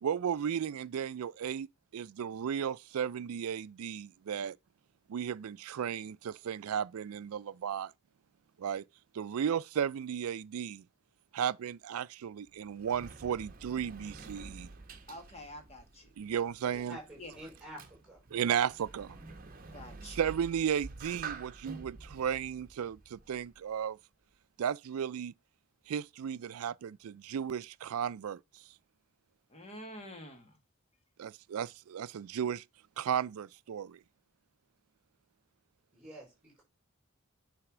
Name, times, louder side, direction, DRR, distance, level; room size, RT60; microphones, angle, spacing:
voice 1, 0.0-1.7 1.9-4.6 5.1-7.9 8.6-8.8 9.1-10.9 11.3-14.7 16.2-17.0 18.3-19.2 20.0-24.0 24.6-25.3 25.9-28.6 31.2-32.6 33.0-34.0, right 8 dB, 80° right, 0.4 m, -34 dB
Sliding door, 12.3-23.8, right 4 dB, 40° right, 1.0 m, -49 dB
voice 2, 15.1-16.1 17.2-17.3 19.7-20.2 29.5-30.5, left 1 dB, 30° left, 1.6 m, -47 dB
voice 3, 16.9-18.2 35.9-36.6, right 1 dB, 5° right, 5.7 m, -48 dB
9.7 x 3.5 x 6.0 m
head